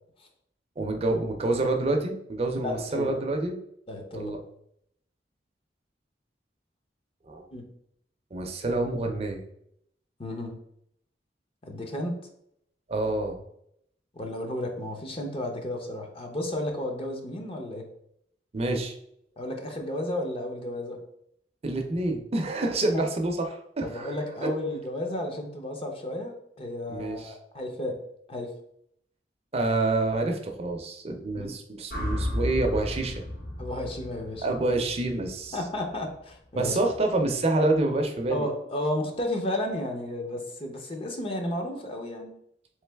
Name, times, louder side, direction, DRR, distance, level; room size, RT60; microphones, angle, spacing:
voice 1, 0.8-3.6 4.1-4.4 7.2-7.5 8.3-9.4 12.9-13.4 18.5-18.9 21.6-24.5 26.9-27.3 29.5-33.2 34.4-35.6 36.5-38.5, right 2 dB, 35° right, 4 dB, 0.5 m, -27 dB
voice 2, 2.6-3.1 3.9-4.4 7.5-7.7 10.2-10.6 11.6-12.2 14.2-17.9 19.4-21.0 22.9-23.0 23.8-28.0 28.3-28.5 31.3-31.5 33.6-34.5 35.5-36.8 38.3-42.3, left 1 dB, 30° left, 2 dB, 0.6 m, -33 dB
sound 1, 31.9-36.1, left 1 dB, 60° left, 1.1 m, -33 dB
3.7 x 3.1 x 3.3 m, 0.73 s
head